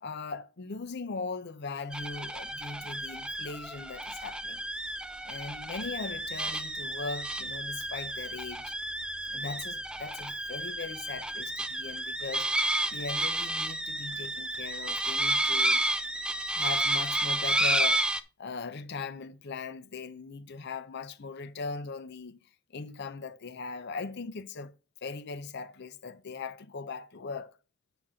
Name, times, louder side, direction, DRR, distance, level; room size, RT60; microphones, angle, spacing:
voice 1, 0.0-4.6 5.2-8.7 9.3-12.5 12.9-15.8 16.5-22.4 22.7-24.7 25.0-27.5, left 4 dB, 55° left, 0.6 m, -39 dB
sound 1, 1.9-18.2, right 1 dB, 5° right, 0.3 m, -31 dB
8.1 x 5.9 x 3.7 m
head